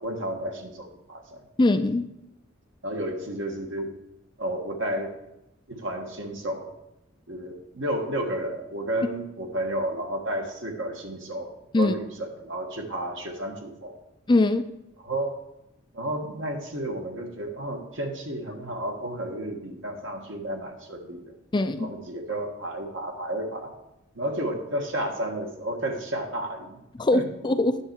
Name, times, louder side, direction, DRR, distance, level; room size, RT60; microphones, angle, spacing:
voice 1, 0.0-1.4 2.8-3.9 4.4-5.1 5.7-6.7 7.3-14.0 15.0-15.4 15.9-21.3 21.8-23.7 24.1-26.8 27.1-27.2, right 1 dB, 70° right, 2 dB, 1.5 m, -32 dB
voice 2, 1.6-2.0 11.7-11.9 14.3-14.6 21.5-21.9 27.0-27.8, left 2 dB, 25° left, 10 dB, 0.4 m, -21 dB
9.7 x 6.5 x 4.7 m, 0.89 s
head